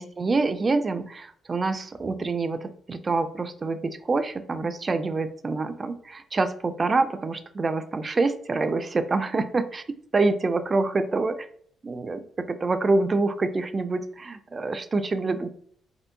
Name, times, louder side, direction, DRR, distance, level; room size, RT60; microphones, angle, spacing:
voice 1, 0.0-9.8 10.1-11.5 11.8-15.5, right 3 dB, 30° right, 9 dB, 0.4 m, -26 dB
4.3 x 4.1 x 2.6 m, 0.63 s
cardioid pair, 90°, 0 cm